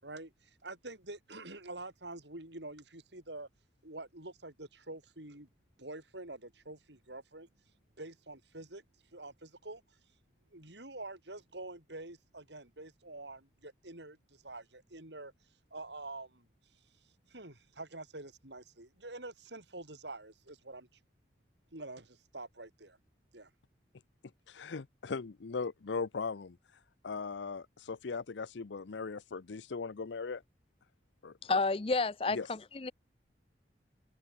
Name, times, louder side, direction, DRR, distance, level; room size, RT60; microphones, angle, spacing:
voice 1, 0.0-3.5 3.8-5.5 5.8-7.5 8.0-8.8 9.1-9.8 10.5-15.3 15.7-16.5 17.3-20.9 21.7-23.0 23.3-23.5, right 2 dB, 80° right, 6.4 m, -47 dB
voice 2, 24.5-26.6 27.0-30.4 31.2-31.4 32.3-32.5, left 4 dB, 90° left, 0.6 m, -38 dB
voice 3, 31.4-32.9, left 3 dB, 30° left, 0.5 m, -31 dB
head